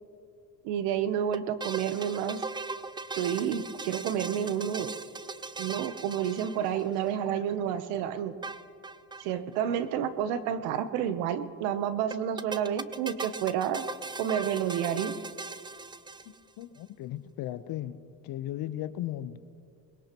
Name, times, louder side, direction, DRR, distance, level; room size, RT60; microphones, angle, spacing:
voice 1, 0.6-2.4 3.1-4.9 5.6-8.4 9.2-13.8 14.2-15.1, right 9 dB, 80° right, 12 dB, 1.0 m, -30 dB
sound 1, 1.3-7.1 8.4-9.3 9.5-9.6 9.8-9.9 12.1-16.6, right 4 dB, 10° right, 0.4 m, -39 dB
voice 2, 16.6-18.0 18.2-19.4, left 13 dB, 65° left, 13 dB, 0.9 m, -36 dB
22.5 x 21.0 x 3.0 m, 2.3 s
supercardioid pair, 85°, 39 cm